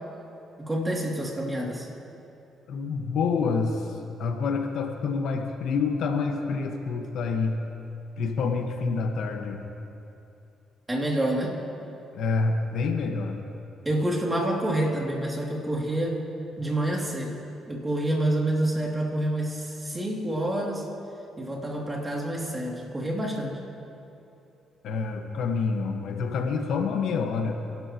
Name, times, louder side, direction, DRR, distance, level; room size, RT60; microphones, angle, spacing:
voice 1, 0.6-1.9 10.9-11.6 13.8-16.2 16.6-17.4 17.7-20.9 21.4-23.6, right 1 dB, 20° right, -1 dB, 2.8 m, -28 dB
voice 2, 2.7-7.6 8.2-9.6 12.1-13.4 24.8-27.6, left 4 dB, 75° left, 3 dB, 1.5 m, -27 dB
26.5 x 12.0 x 3.1 m, 2.7 s
cardioid pair, 90°, 0 cm